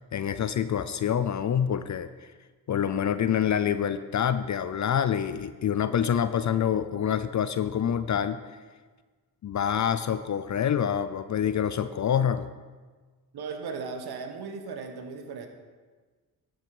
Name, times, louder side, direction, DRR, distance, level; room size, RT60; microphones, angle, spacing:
voice 1, 0.1-2.1 2.7-8.4 9.4-12.5, left 8 dB, 50° left, 12 dB, 0.5 m, -26 dB
voice 2, 13.3-15.5, right 5 dB, 75° right, 5 dB, 1.1 m, -37 dB
12.0 x 6.4 x 4.8 m, 1.4 s
cardioid pair, 60°, 39 cm